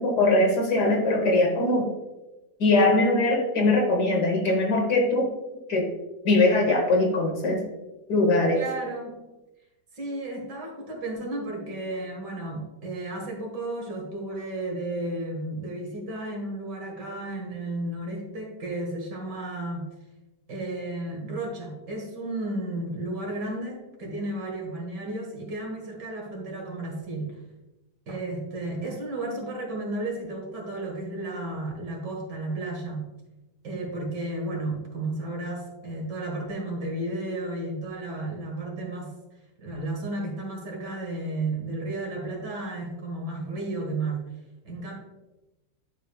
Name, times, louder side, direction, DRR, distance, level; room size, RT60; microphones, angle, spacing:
voice 1, 0.0-1.9 2.6-5.3 5.7-5.9 6.2-7.7 8.1-8.6, left 2 dB, 60° left, 2 dB, 1.7 m, -21 dB
voice 2, 8.5-9.2 9.9-19.9 20.5-27.4 28.1-33.1 33.6-39.1 39.6-44.3 44.6-44.9, right 2 dB, 65° right, 0 dB, 2.2 m, -33 dB
11.0 x 5.1 x 2.3 m, 1.0 s
omnidirectional pair, 2.0 m